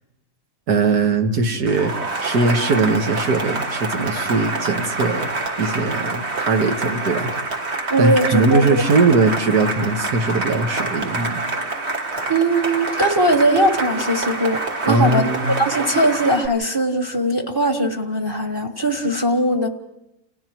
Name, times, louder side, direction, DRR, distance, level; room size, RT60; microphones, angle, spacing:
voice 1, 0.7-1.9 2.2-5.3 5.6-7.3 8.0-11.4 14.9-15.5, right 3 dB, 70° right, 5 dB, 2.0 m, -20 dB
Cheering / Applause, 1.7-16.5, right 2 dB, 40° right, 1.8 m, -26 dB
voice 2, 7.9-8.8 12.3-15.3 15.6-19.7, right 1 dB, 15° right, 4 dB, 1.4 m, -20 dB
30.0 x 29.5 x 3.1 m, 0.87 s
omnidirectional pair, 1.7 m